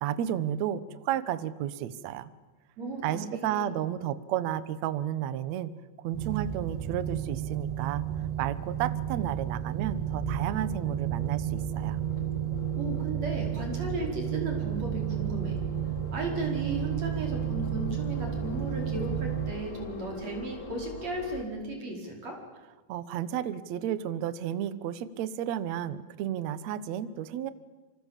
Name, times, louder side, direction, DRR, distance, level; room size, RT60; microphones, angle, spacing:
voice 1, 0.0-2.3 3.0-5.7 6.0-8.1 8.4-12.0 22.9-27.5, right 10 dB, 65° right, 15 dB, 1.8 m, -32 dB
voice 2, 2.8-3.8 12.8-15.6 16.1-22.4, right 2 dB, 40° right, 2 dB, 5.9 m, -35 dB
sound 1, 6.1-19.5, right 10 dB, 80° right, 3.7 m, -32 dB
sound 2, 8.0-21.4, left 2 dB, 35° left, 1.2 m, -44 dB
27.0 x 24.5 x 7.5 m, 1.2 s
omnidirectional pair, 4.5 m